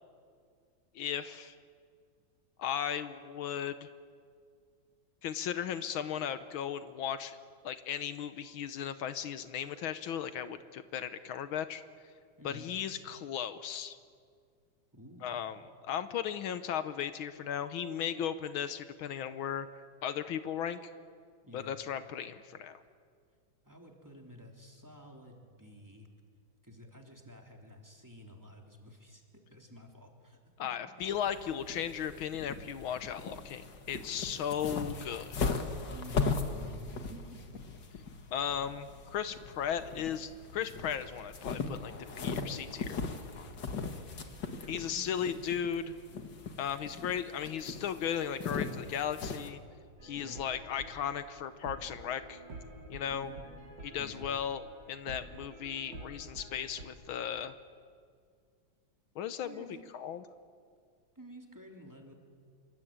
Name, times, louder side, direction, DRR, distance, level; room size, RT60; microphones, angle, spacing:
voice 1, 0.9-1.5 2.6-3.9 5.2-7.4 7.6-11.8 12.4-14.0 15.2-15.6 15.9-19.7 20.0-20.9 21.5-22.8 30.6-35.5 38.3-43.0 44.7-45.9 46.6-49.6 50.0-52.4 52.9-53.3 53.8-57.5 59.1-60.2, left 8 dB, 80° left, 11 dB, 1.7 m, -36 dB
voice 2, 12.4-12.7 14.9-15.4 21.5-21.7 23.6-26.1 26.6-29.2 29.5-30.9 35.9-37.6 44.6-45.5 50.1-50.4 53.1-53.4 54.0-54.2 59.4-59.8 61.1-62.1, equal, 10° right, 1 dB, 3.3 m, -51 dB
sound 1, 31.0-49.5, left 4 dB, 60° left, 2.4 m, -39 dB
sound 2, 50.0-56.9, right 1 dB, 60° right, 4.1 m, -49 dB
27.0 x 23.5 x 8.8 m, 2.1 s
omnidirectional pair, 2.3 m